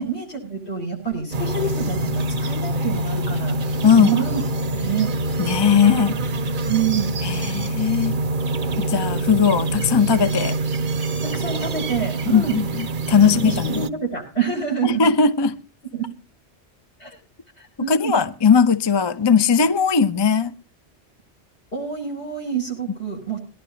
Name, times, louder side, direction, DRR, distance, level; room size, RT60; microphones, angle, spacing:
voice 1, 0.0-4.4 4.7-5.1 6.0-6.2 6.6-7.1 11.2-12.5 13.2-15.0 15.9-16.1 17.0-17.2 17.6-18.1 21.7-23.4, right 7 dB, 70° left, 7.8 m, -27 dB
sound 1, 1.3-13.9, right 2 dB, 50° right, 0.9 m, -25 dB
voice 2, 3.8-4.1 5.4-6.2 7.2-8.2 8.8-10.6 12.3-13.8 14.8-15.6 17.9-20.5, left 6 dB, 30° left, 0.6 m, -18 dB
22.0 x 11.5 x 2.8 m
omnidirectional pair, 1.2 m